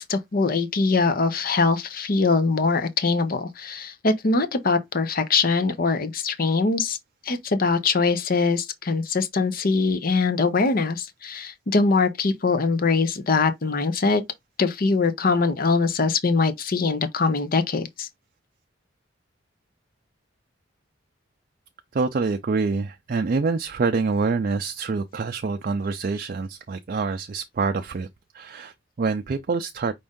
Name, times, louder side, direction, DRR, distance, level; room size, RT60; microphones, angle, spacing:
voice 1, 0.0-7.0 7.2-14.2 14.6-18.1, left 4 dB, 50° left, 0.7 m, -22 dB
voice 2, 21.9-28.1 28.3-29.9, right 4 dB, 45° right, 0.4 m, -26 dB
5.3 x 2.6 x 3.5 m
head